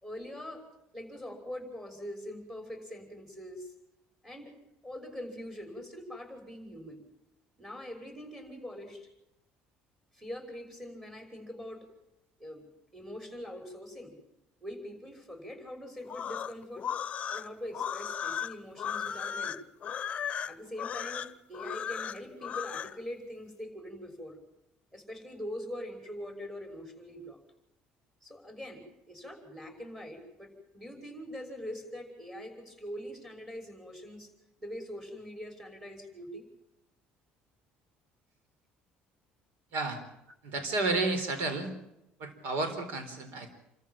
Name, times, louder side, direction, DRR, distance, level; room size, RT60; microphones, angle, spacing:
voice 1, 0.0-0.6 0.9-3.7 4.2-4.5 4.8-7.1 7.6-9.1 10.1-11.9 12.4-14.1 14.6-16.9 17.3-19.6 20.4-24.4 24.9-27.4 28.2-34.3 34.6-36.4, equal, 10° right, 5 dB, 6.1 m, -43 dB
sound 1, 16.0-23.0, left 8 dB, 40° left, 0.8 m, -36 dB
voice 2, 40.4-41.7 42.2-43.5, right 3 dB, 70° right, 9 dB, 4.2 m, -31 dB
27.5 x 14.0 x 7.6 m, 0.88 s
cardioid pair, 110°, 4 cm